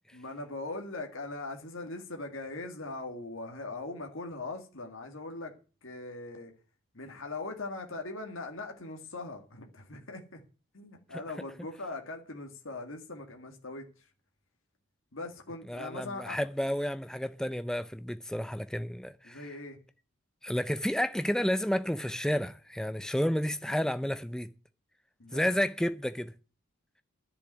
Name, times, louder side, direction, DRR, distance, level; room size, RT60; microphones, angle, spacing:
voice 1, 0.1-5.5 5.8-6.5 6.9-10.4 10.7-14.1 15.1-16.4 19.2-19.8 25.2-25.5, left 2 dB, 65° left, 1.9 m, -40 dB
voice 2, 15.7-19.4 20.4-24.5 25.3-26.3, equal, 5° left, 0.5 m, -31 dB
10.5 x 7.0 x 8.0 m
head